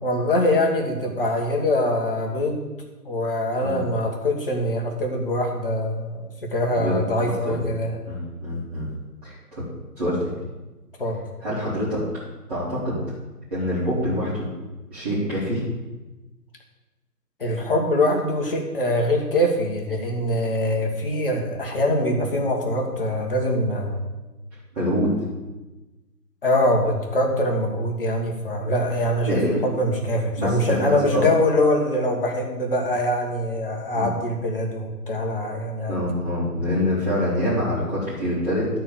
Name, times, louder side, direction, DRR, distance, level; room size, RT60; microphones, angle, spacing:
voice 1, 0.0-2.7 3.0-8.0 11.0-11.2 17.4-24.0 26.4-36.0, left 1 dB, 35° left, 0 dB, 1.6 m, -23 dB
voice 2, 6.7-7.7 8.1-8.9 9.2-9.6 10.0-10.3 11.4-12.0 12.5-13.0 13.5-14.5 14.9-15.6 24.7-25.1 29.2-29.6 30.4-31.2 33.9-34.1 35.9-38.7, equal, 25° right, -12 dB, 2.9 m, -25 dB
12.5 x 4.5 x 6.9 m, 1.1 s
figure-of-eight pair, 155°, 48 cm